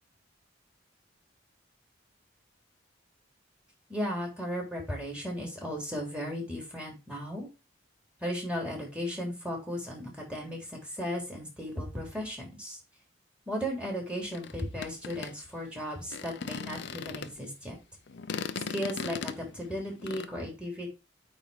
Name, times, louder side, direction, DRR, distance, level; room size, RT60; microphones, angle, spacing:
voice 1, 3.9-7.5 8.2-12.8 13.5-17.8 18.7-20.9, equal, 5° right, -1 dB, 3.5 m, -36 dB
sound 1, 14.3-17.5 18.1-20.3, left 5 dB, 65° left, 0.7 m, -38 dB
8.9 x 3.8 x 4.9 m, 0.28 s
head